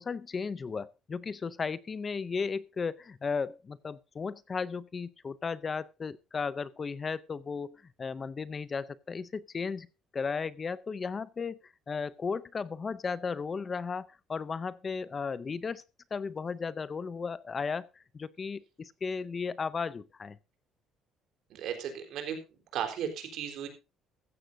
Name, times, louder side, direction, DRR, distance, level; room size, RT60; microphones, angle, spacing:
voice 1, 0.0-9.9 10.1-15.8 16.1-20.4, left 5 dB, 25° left, 0.5 m, -35 dB
voice 2, 21.5-22.4 22.7-23.7, right 8 dB, 65° right, 3.9 m, -35 dB
15.0 x 14.0 x 2.6 m
cardioid pair, 150°, 0 cm